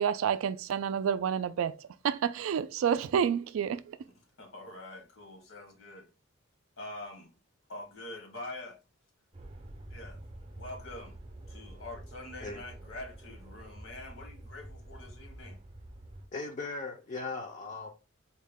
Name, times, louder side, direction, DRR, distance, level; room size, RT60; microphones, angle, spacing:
voice 1, 0.0-4.0, right 8 dB, 75° right, 0.3 m, -29 dB
voice 2, 4.4-6.1 6.8-7.3 7.7-8.8 9.9-10.2 10.5-11.2 11.5-15.6, left 2 dB, 75° left, 1.1 m, -45 dB
sound 1, 9.3-16.3, right 1 dB, 30° right, 0.6 m, -48 dB
voice 3, 16.3-17.9, left 3 dB, 35° left, 0.4 m, -38 dB
4.1 x 2.2 x 3.4 m
head